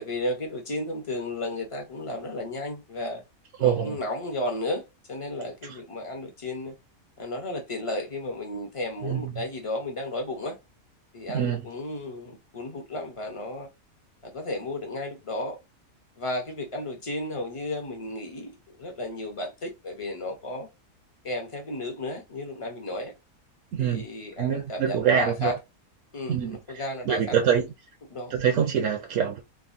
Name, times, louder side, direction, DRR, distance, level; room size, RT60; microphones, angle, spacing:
voice 1, 0.0-3.2 3.6-4.8 5.1-6.7 7.2-10.6 11.1-13.7 14.2-15.6 16.2-18.5 18.8-20.7 21.2-23.1 23.8-25.5 26.1-27.3 28.1-28.3, left 1 dB, 45° left, 0.4 m, -33 dB
voice 2, 3.6-4.0 5.6-5.8 9.0-9.4 11.3-11.7 23.7-24.0 24.4-25.6 26.3-27.7 28.3-29.4, right 8 dB, 65° right, 0.9 m, -25 dB
3.4 x 2.1 x 2.5 m
omnidirectional pair, 1.5 m